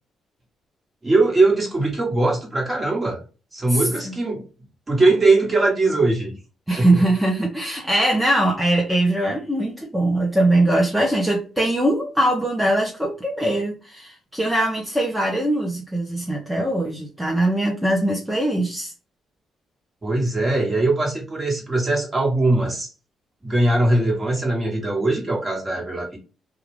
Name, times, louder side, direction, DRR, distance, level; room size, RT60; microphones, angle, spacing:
voice 1, 1.0-3.2 3.5-4.4 4.9-6.3 6.8-7.0 20.0-22.9 23.4-26.2, right 2 dB, 25° right, -1 dB, 1.3 m, -20 dB
voice 2, 3.7-4.1 6.7-18.9, right 1 dB, 5° right, -2 dB, 0.7 m, -21 dB
2.3 x 2.3 x 3.3 m, 0.34 s
cardioid pair, 90°, 0 cm